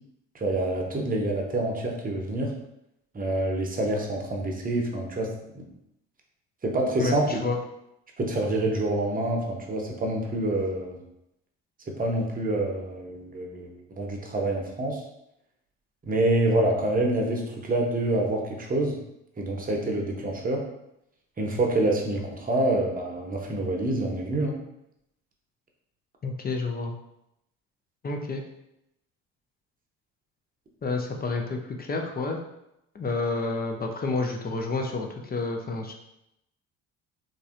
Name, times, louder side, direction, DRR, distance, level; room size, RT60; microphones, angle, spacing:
voice 1, 0.3-2.5 3.1-5.6 6.6-7.4 8.2-11.0 11.9-15.0 16.1-19.0 19.4-20.6 21.4-24.6, right 1 dB, 25° right, 0 dB, 0.8 m, -27 dB
voice 2, 7.0-7.6 26.2-26.9 28.0-28.4 30.8-32.4 32.9-35.9, left 3 dB, 30° left, 2 dB, 0.5 m, -29 dB
3.1 x 2.6 x 2.5 m, 0.82 s
hypercardioid pair, 60°, 34 cm